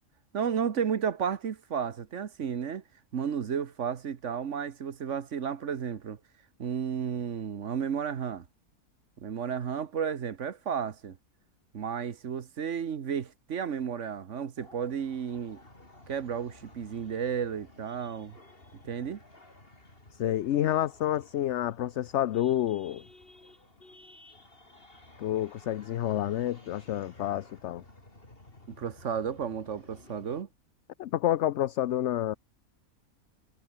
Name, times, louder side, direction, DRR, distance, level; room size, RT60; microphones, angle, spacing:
voice 1, 0.3-2.8 3.1-6.2 6.6-8.4 9.2-11.2 11.7-15.6 16.1-18.4 18.8-19.2 28.7-30.5, right 7 dB, 55° right, 1.4 m, -33 dB
sound 1, 14.6-30.4, left 2 dB, 35° left, 4.5 m, -54 dB
voice 2, 20.2-23.0 25.2-27.8 31.0-32.3, left 12 dB, 60° left, 0.8 m, -29 dB
omnidirectional pair, 1.6 m